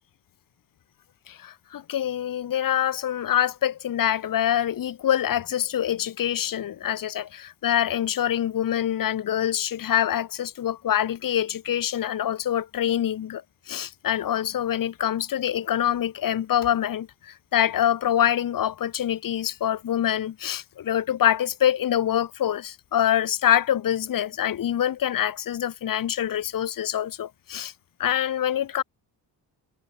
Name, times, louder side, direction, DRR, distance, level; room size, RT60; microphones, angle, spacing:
voice 1, 1.3-27.7 28.0-28.8, left 10 dB, 55° left, 3.0 m, -25 dB
cardioid pair, 145°, 40 cm